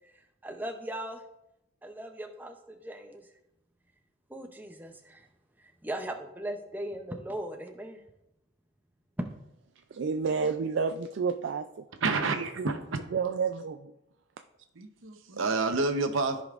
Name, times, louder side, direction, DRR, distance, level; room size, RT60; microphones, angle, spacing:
voice 1, 0.4-1.2 1.8-2.6 2.8-3.2 4.3-5.2 5.8-8.0, right 1 dB, 10° right, 4 dB, 0.5 m, -38 dB
voice 2, 9.9-11.7 12.6-12.7 13.1-13.9, right 5 dB, 65° right, 7 dB, 0.3 m, -30 dB
voice 3, 12.0-12.8 14.8-16.4, right 3 dB, 80° right, 7 dB, 0.8 m, -28 dB
14.0 x 5.1 x 2.5 m, 0.88 s
head